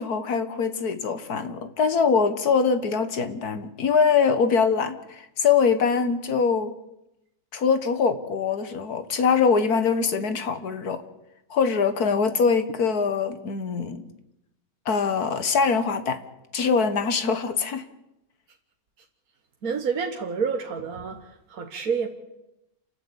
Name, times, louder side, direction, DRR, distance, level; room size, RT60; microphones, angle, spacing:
voice 1, 0.0-6.7 7.5-11.0 11.5-14.0 14.9-16.2 16.5-17.8, left 5 dB, 85° left, 10 dB, 2.0 m, -23 dB
voice 2, 19.6-22.1, right 6 dB, 70° right, 2 dB, 1.9 m, -28 dB
29.0 x 12.5 x 8.7 m, 0.90 s
omnidirectional pair, 1.6 m